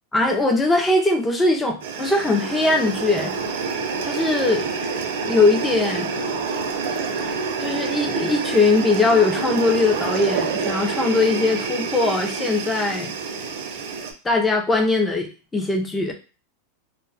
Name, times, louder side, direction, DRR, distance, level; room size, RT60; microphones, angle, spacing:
voice 1, 0.1-3.3 4.0-4.7 4.9-6.1 7.6-13.1 14.2-16.1, left 3 dB, 10° left, 3 dB, 0.4 m, -21 dB
sound 1, 1.8-14.1, right 5 dB, 60° right, 0.5 m, -27 dB
2.1 x 2.0 x 3.8 m, 0.34 s
supercardioid pair, 165°, 0 cm